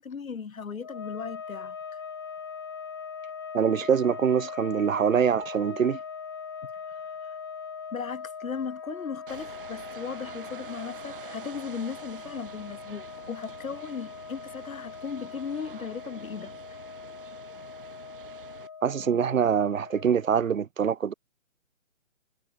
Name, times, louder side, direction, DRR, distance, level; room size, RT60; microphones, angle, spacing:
voice 1, 0.0-2.0 7.9-16.6, left 6 dB, 80° left, 1.7 m, -37 dB
sound 1, 0.8-20.4, left 6 dB, 20° left, 0.8 m, -41 dB
voice 2, 3.5-6.0 18.8-21.1, right 7 dB, 75° right, 0.9 m, -24 dB
sound 2, 9.3-18.7, right 8 dB, 40° right, 6.6 m, -47 dB
hypercardioid pair, 165°, 40 cm